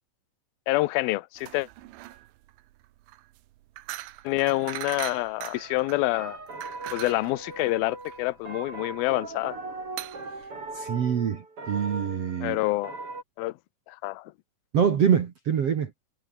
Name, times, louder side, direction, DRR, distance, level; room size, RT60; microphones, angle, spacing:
voice 1, 0.7-1.7 4.2-6.4 6.9-9.6 12.4-13.0 13.4-13.5 13.9-14.3, left 19 dB, 75° left, 2.3 m, -27 dB
sound 1, 1.4-11.4, right 16 dB, 85° right, 3.5 m, -41 dB
sound 2, 5.5-13.2, right 3 dB, 30° right, 7.2 m, -40 dB
voice 2, 10.7-12.6 14.7-15.9, right 8 dB, 55° right, 1.7 m, -25 dB
omnidirectional pair, 5.2 m